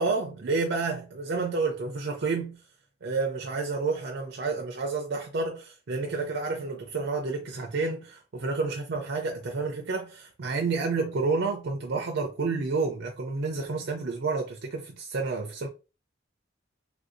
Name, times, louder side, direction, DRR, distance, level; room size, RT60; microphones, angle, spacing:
voice 1, 0.0-2.6 3.0-15.7, right 4 dB, 60° right, 0.5 m, -30 dB
3.4 x 2.6 x 2.5 m
head